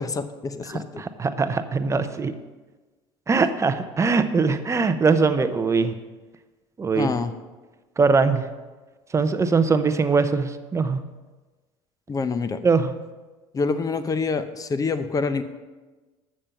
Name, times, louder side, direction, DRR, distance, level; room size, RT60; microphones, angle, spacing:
voice 1, 0.0-1.0 6.9-7.3 12.1-12.6 13.5-15.4, left 4 dB, 25° left, 11 dB, 0.7 m, -26 dB
voice 2, 0.7-2.3 3.3-6.0 6.8-7.1 8.0-8.5 9.1-11.0 12.6-12.9, right 4 dB, 20° right, 10 dB, 0.7 m, -21 dB
7.3 x 6.7 x 5.8 m, 1.3 s
supercardioid pair, 85°, 13 cm